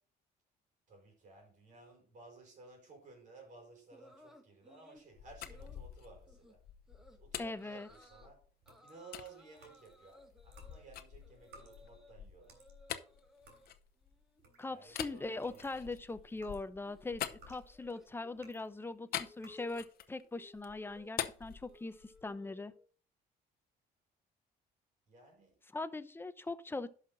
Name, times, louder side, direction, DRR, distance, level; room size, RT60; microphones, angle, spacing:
voice 1, 0.9-6.6 7.2-8.4 8.8-12.7 14.7-15.9 25.1-25.6, right 3 dB, 50° right, 4.9 m, -57 dB
sound 1, 3.9-5.1 5.5-5.8 6.3-6.5 6.9-7.2 7.5-8.3 8.7-12.1 12.4-13.7 14.0-14.4 14.7-22.9, left 1 dB, 5° right, 1.5 m, -61 dB
sound 2, 5.0-8.5 9.1-9.3 9.9-14.3 14.9-18.1 19.1-20.2 20.5-22.3, left 11 dB, 65° left, 0.8 m, -45 dB
voice 2, 7.4-7.9 14.6-22.7 25.7-26.9, left 3 dB, 15° left, 0.7 m, -41 dB
sound 3, 8.6-10.1 10.4-14.9 15.2-18.8 19.3-19.7, right 3 dB, 80° right, 3.7 m, -62 dB
11.0 x 5.8 x 3.9 m
cardioid pair, 110°, 17 cm